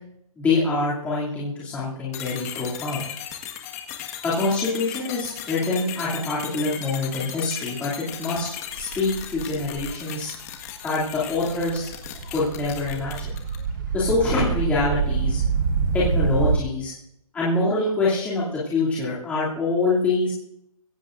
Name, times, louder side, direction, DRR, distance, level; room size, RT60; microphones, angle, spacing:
voice 1, 0.4-3.0 4.2-8.5 8.7-10.3 10.8-11.9 12.3-13.1 13.9-15.4 15.9-16.9 17.3-20.3, left 3 dB, 5° left, -9 dB, 2.7 m, -25 dB
sound 1, 2.1-13.7, left 10 dB, 25° left, 1.6 m, -37 dB
sound 2, 8.7-9.9 10.6-10.7 11.0-16.6, right 5 dB, 35° right, 1.4 m, -26 dB
23.5 x 16.5 x 2.6 m, 0.76 s
hypercardioid pair, 165°, 19 cm